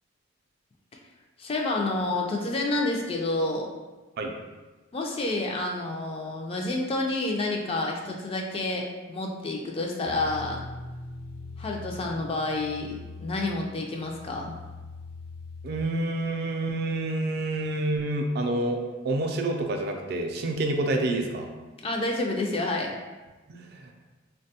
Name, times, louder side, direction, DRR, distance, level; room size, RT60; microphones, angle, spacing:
voice 1, 1.4-3.7 4.9-10.6 11.6-14.6 21.8-22.9, left 2 dB, 30° left, 1 dB, 0.3 m, -29 dB
sound 1, 10.0-15.8, left 3 dB, 85° left, 0.9 m, -42 dB
voice 2, 15.6-21.5 23.5-23.9, right 2 dB, 55° right, 3 dB, 0.3 m, -28 dB
3.3 x 2.2 x 2.7 m, 1.2 s
head